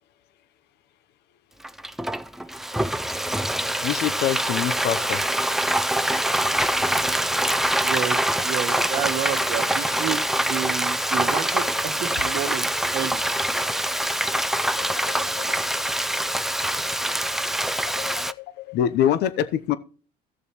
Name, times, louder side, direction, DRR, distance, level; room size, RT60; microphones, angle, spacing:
Frying (food), 1.6-18.3, right 1 dB, ahead, 0.4 m, -24 dB
voice 1, 3.8-5.2 14.8-15.5 16.6-16.9 18.0-19.8, left 10 dB, 75° left, 0.8 m, -26 dB
voice 2, 7.8-11.6 12.0-12.7 12.9-13.2, right 11 dB, 75° right, 1.1 m, -30 dB
16.0 x 6.8 x 3.0 m
cardioid pair, 110°, 17 cm